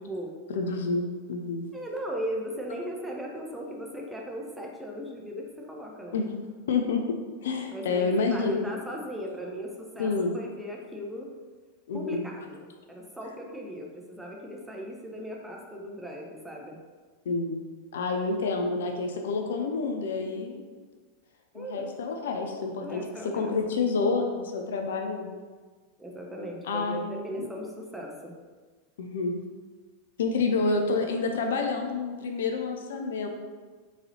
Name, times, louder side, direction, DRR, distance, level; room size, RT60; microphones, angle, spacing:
voice 1, 0.5-1.7 6.1-6.3 6.7-7.0 7.4-8.6 10.0-10.3 11.9-12.3 17.3-17.7 17.9-20.6 21.6-23.0 23.3-25.4 26.6-27.1 27.4-27.5 29.0-29.4 30.2-33.3, left 4 dB, 60° left, 3 dB, 0.4 m, -28 dB
voice 2, 1.7-6.2 7.7-11.3 11.9-16.8 21.5-21.9 22.8-23.5 26.0-28.3, equal, 5° right, -1 dB, 0.6 m, -37 dB
3.7 x 3.2 x 2.7 m, 1.4 s
figure-of-eight pair, 90°, 0 cm